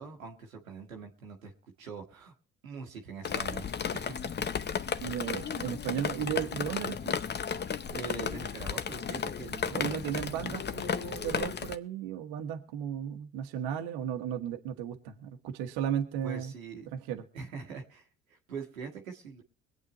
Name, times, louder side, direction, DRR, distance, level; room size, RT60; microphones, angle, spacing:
voice 1, 0.0-1.5 1.8-2.3 2.6-4.4 4.7-4.9 7.9-9.9 10.3-11.2 16.2-16.9 17.3-18.0 18.3-19.4, right 5 dB, 90° right, 2 dB, 1.4 m, -43 dB
Drip, 3.2-11.8, left 7 dB, 25° left, 0.7 m, -34 dB
voice 2, 5.0-7.2 9.7-16.5 16.9-17.2, right 10 dB, 65° right, 5 dB, 1.3 m, -35 dB
24.0 x 8.6 x 3.0 m, 0.41 s
hypercardioid pair, 55°, 40 cm